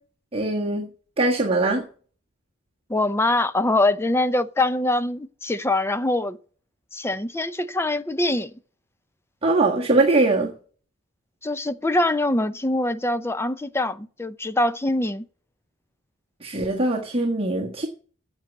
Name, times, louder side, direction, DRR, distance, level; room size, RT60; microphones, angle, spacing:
voice 1, 0.3-0.9 1.2-1.9 9.4-10.5 16.4-17.9, right 2 dB, 25° right, 1.5 m, -21 dB
voice 2, 2.9-6.4 6.9-8.5 11.4-15.2, left 2 dB, 10° left, 0.6 m, -23 dB
8.8 x 8.2 x 8.1 m
head